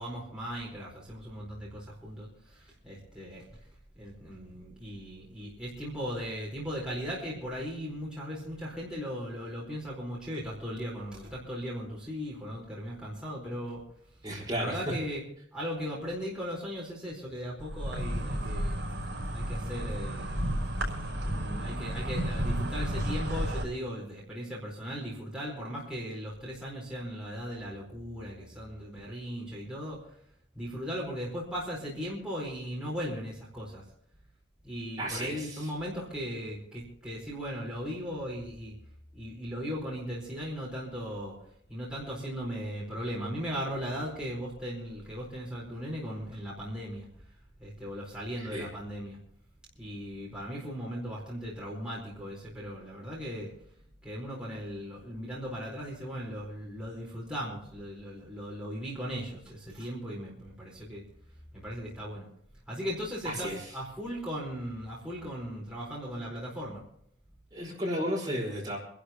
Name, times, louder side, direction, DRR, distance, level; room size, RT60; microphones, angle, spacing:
voice 1, 0.0-3.4 3.9-13.8 14.5-15.2 15.5-18.9 19.3-20.6 21.2-30.0 30.5-33.8 34.6-38.7 39.1-41.3 41.7-47.1 47.6-49.2 49.8-53.5 54.0-61.0 61.5-62.3 62.7-66.8, equal, 5° right, -6 dB, 4.4 m, -37 dB
voice 2, 14.2-14.9 35.0-35.7 48.5-48.7 63.2-63.7 67.5-68.8, equal, 20° right, -3 dB, 4.8 m, -33 dB
Insect, 17.6-23.6, equal, 65° right, 5.6 m, -32 dB
26.5 x 12.0 x 3.0 m, 0.67 s
head